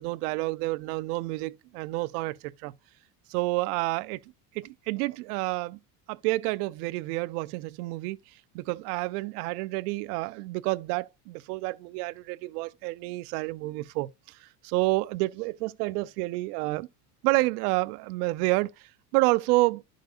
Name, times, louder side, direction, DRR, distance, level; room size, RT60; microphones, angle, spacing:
voice 1, 0.0-2.4 2.6-2.7 3.3-4.2 4.5-5.8 6.1-8.2 8.5-16.9 17.2-18.7 19.1-19.8, right 21 dB, 80° right, 0.7 m, -29 dB
11.5 x 5.3 x 2.4 m
supercardioid pair, 115°, 46 cm